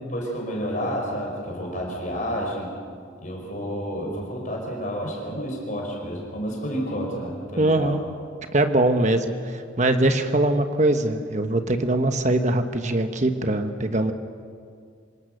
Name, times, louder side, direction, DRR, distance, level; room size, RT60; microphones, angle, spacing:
voice 1, 0.1-2.7 3.2-7.9, equal, 40° left, 0 dB, 5.5 m, -30 dB
voice 2, 7.6-8.0 8.5-14.1, right 1 dB, 35° right, 7 dB, 1.2 m, -22 dB
26.5 x 18.0 x 6.7 m, 2.2 s
head